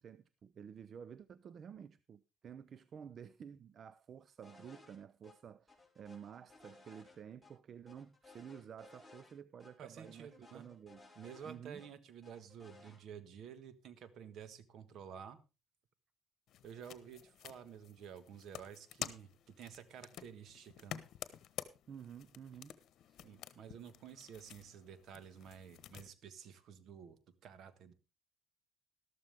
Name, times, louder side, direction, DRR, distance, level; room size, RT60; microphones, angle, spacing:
voice 1, 0.0-11.1 11.4-11.8 21.9-22.8 23.1-23.2, right 8 dB, 50° right, 0.5 m, -52 dB
sound 1, 4.4-5.0 5.2-5.3 5.7-7.5 7.9-9.3 9.6-9.7 10.0-11.9 12.2-13.0, left 3 dB, 5° right, 5.1 m, -60 dB
voice 2, 9.8-10.6 11.1-15.4 16.6-21.0 23.2-27.9, right 8 dB, 65° right, 1.5 m, -52 dB
sound 2, 16.5-26.1, left 11 dB, 65° left, 1.2 m, -50 dB
13.0 x 13.0 x 3.5 m
cardioid pair, 105°, 0 cm